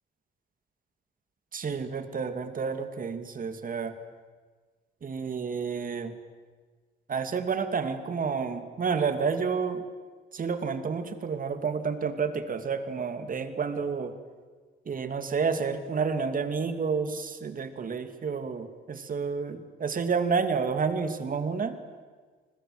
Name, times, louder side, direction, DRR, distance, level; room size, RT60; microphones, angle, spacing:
voice 1, 1.5-3.9 5.0-6.1 7.1-9.8 10.3-14.1 14.9-21.8, right 5 dB, 45° right, 9 dB, 2.6 m, -30 dB
30.0 x 21.0 x 8.0 m, 1.5 s
cardioid pair, 90°, 20 cm